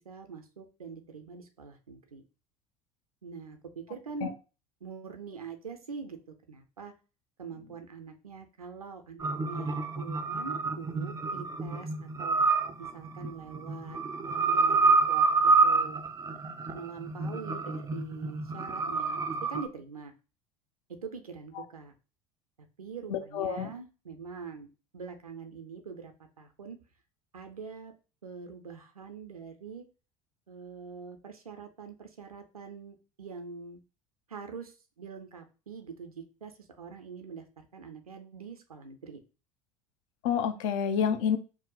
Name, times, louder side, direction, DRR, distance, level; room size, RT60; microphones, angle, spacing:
voice 1, 0.0-2.2 3.2-4.3 4.8-6.9 7.4-12.4 12.8-14.0 14.2-16.0 16.7-20.1 20.9-21.9 22.8-26.8 27.3-27.9 28.2-29.8 30.5-33.8 34.3-39.2, right 5 dB, 90° right, 0.4 m, -44 dB
sound 1, 9.2-19.7, right 4 dB, 20° right, 0.4 m, -28 dB
voice 2, 23.1-23.7 40.2-41.4, left 7 dB, 60° left, 0.5 m, -28 dB
2.6 x 2.0 x 3.8 m
figure-of-eight pair, 70°, 18 cm